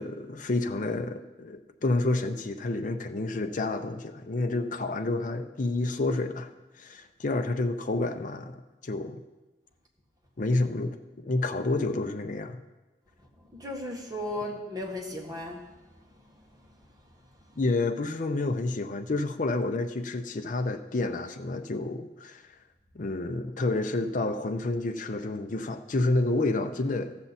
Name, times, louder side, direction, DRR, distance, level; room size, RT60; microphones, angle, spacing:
voice 1, 0.0-6.5 6.8-9.2 10.4-12.6 17.6-22.4 22.9-27.2, left 2 dB, 45° left, 6 dB, 0.5 m, -29 dB
voice 2, 13.3-17.6, left 1 dB, 20° right, -1 dB, 1.6 m, -38 dB
14.0 x 7.3 x 4.1 m, 1.1 s
head